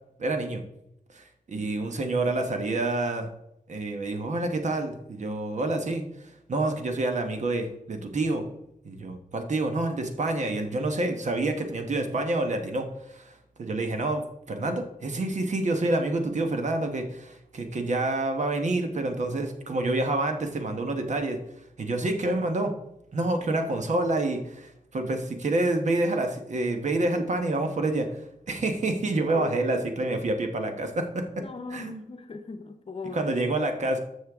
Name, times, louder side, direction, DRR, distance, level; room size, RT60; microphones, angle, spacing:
voice 1, 0.2-0.6 1.1-3.3 3.7-6.0 6.5-8.4 8.8-14.2 14.5-21.4 21.8-22.7 23.1-28.2 28.5-31.4 31.7-32.0 33.1-34.0, right 2 dB, 55° right, 5 dB, 1.2 m, -28 dB
voice 2, 1.5-1.8 29.3-29.5 31.4-33.3, left 3 dB, 45° left, 7 dB, 0.8 m, -39 dB
11.5 x 6.5 x 3.6 m, 0.81 s
wide cardioid pair, 160°, 14 cm